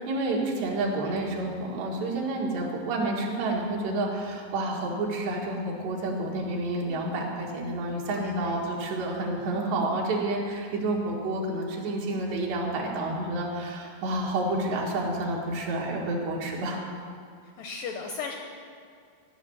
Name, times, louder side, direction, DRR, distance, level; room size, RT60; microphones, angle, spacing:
voice 1, 0.0-16.8, right 2 dB, 75° right, -2 dB, 4.1 m, -29 dB
voice 2, 8.1-8.6 17.6-18.4, left 5 dB, 80° left, 3 dB, 2.0 m, -36 dB
14.5 x 6.8 x 9.9 m, 2.3 s
omnidirectional pair, 4.9 m